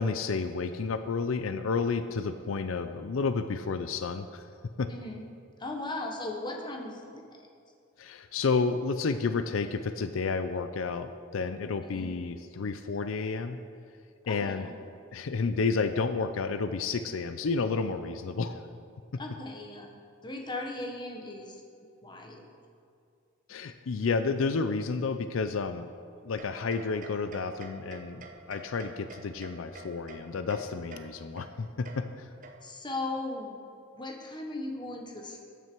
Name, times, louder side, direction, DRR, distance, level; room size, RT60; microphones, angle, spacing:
voice 1, 0.0-4.4 4.8-4.9 8.0-13.6 14.3-14.7 15.1-18.6 19.1-19.2 23.5-25.9 26.2-28.2 28.5-32.3, left 4 dB, 75° left, 10 dB, 0.5 m, -31 dB
voice 2, 4.9-5.2 5.6-7.5 11.8-12.1 14.2-14.7 19.2-19.9 20.2-21.6 22.0-22.5 32.6-33.6 33.9-35.4, left 2 dB, 20° left, 2 dB, 1.2 m, -37 dB
sound 1, 26.4-32.9, right 3 dB, 40° right, 0.9 m, -49 dB
13.0 x 9.4 x 4.6 m, 2.4 s
head